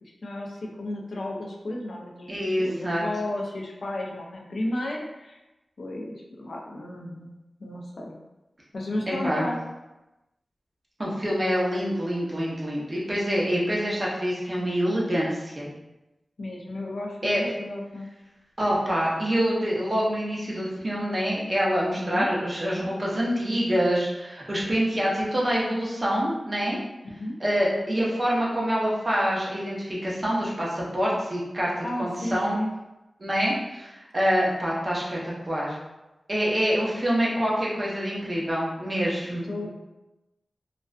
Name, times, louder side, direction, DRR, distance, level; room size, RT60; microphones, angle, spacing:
voice 1, 0.0-2.3 2.6-5.4 5.8-7.3 7.6-8.2 8.7-9.6 16.4-18.1 22.0-22.3 27.1-27.3 31.8-32.7 39.4-39.7, left 1 dB, 70° left, -1 dB, 0.4 m, -33 dB
voice 2, 2.3-3.0 9.2-9.5 11.0-15.7 17.2-17.4 18.6-26.8 27.4-31.7 32.0-32.6 33.2-35.8 36.3-39.7, equal, 35° right, -5 dB, 0.7 m, -26 dB
2.4 x 2.2 x 2.4 m, 1.0 s
wide cardioid pair, 75°, 0 cm